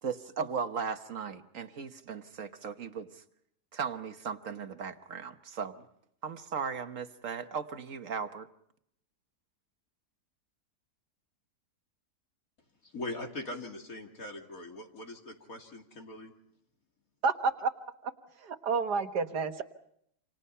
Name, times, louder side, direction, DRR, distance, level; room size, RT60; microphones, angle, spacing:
voice 1, 0.0-3.2 3.7-5.9 6.2-8.5, right 6 dB, 55° right, 9 dB, 1.5 m, -37 dB
voice 2, 12.8-16.3, left 2 dB, 60° left, 2 dB, 3.0 m, -41 dB
voice 3, 17.2-17.7 18.0-18.1 18.4-19.6, right 5 dB, 85° right, 8 dB, 2.0 m, -29 dB
28.5 x 27.0 x 5.6 m, 0.72 s
omnidirectional pair, 1.7 m